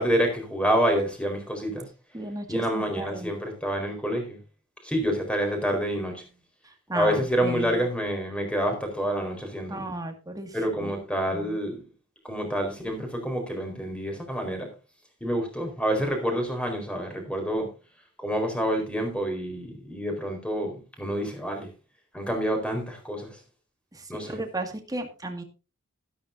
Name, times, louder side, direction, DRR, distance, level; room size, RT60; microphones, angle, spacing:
voice 1, 0.0-1.9 2.5-4.4 4.8-6.2 6.9-9.8 10.5-11.8 12.2-14.7 15.2-17.7 18.2-21.7 22.1-23.4 24.1-24.4, equal, 5° left, 4 dB, 4.3 m, -28 dB
voice 2, 2.1-3.3 6.9-7.8 9.7-11.0 11.3-11.6 23.9-25.4, right 1 dB, 20° right, 5 dB, 2.0 m, -35 dB
13.0 x 12.5 x 2.7 m, 0.31 s
head